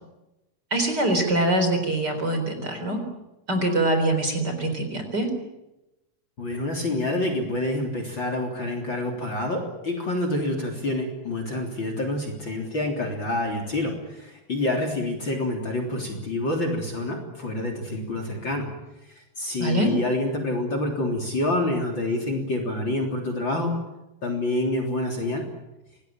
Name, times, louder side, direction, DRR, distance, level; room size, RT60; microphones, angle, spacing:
voice 1, 0.7-3.0 3.5-5.3 19.6-19.9, right 1 dB, 30° right, 5 dB, 4.4 m, -24 dB
voice 2, 6.4-18.7 19.1-23.7 24.2-25.4, left 1 dB, 35° left, 4 dB, 3.9 m, -27 dB
27.0 x 19.5 x 9.0 m, 0.95 s
omnidirectional pair, 4.1 m